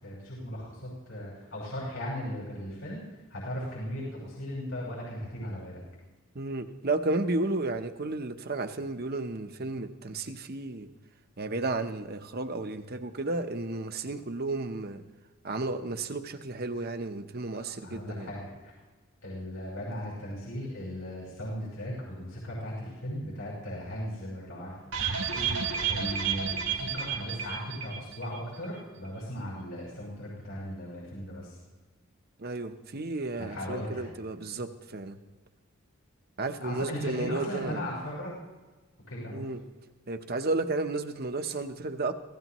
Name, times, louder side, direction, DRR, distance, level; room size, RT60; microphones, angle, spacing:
voice 1, 0.0-5.8 17.5-18.7 19.2-24.7 25.9-31.6 33.4-34.0 36.6-38.4 39.1-39.4, equal, 85° left, -6 dB, 5.6 m, -37 dB
voice 2, 6.3-10.9 11.4-15.0 15.4-18.3 25.3-25.7 32.4-35.2 36.4-37.9 39.3-39.6 40.1-42.1, right 2 dB, 45° right, 7 dB, 0.9 m, -33 dB
sound 1, 24.9-28.4 28.6-28.7 29.1-29.2, right 6 dB, 90° right, 3.6 m, -31 dB
26.0 x 16.5 x 3.0 m, 1.2 s
head